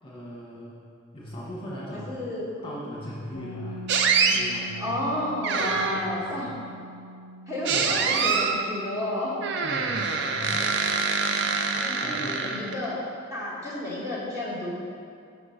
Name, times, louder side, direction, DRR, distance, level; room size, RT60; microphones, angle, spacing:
voice 1, 0.0-0.8 1.1-2.2 2.6-5.0 5.5-6.6 7.7-8.0 9.6-10.7 12.0-12.7, equal, 25° left, -6 dB, 1.1 m, -39 dB
voice 2, 1.9-2.7 4.8-6.5 7.5-9.4 11.7-13.0 13.3-14.7, left 1 dB, 20° right, -8 dB, 1.6 m, -31 dB
sound 1, 3.3-13.1, equal, 50° left, 0.5 m, -45 dB
sound 2, 3.9-4.4 5.4-6.2 7.6-8.6 9.4-12.9, right 5 dB, 60° right, 0.5 m, -25 dB
6.2 x 4.4 x 5.6 m, 2.4 s
head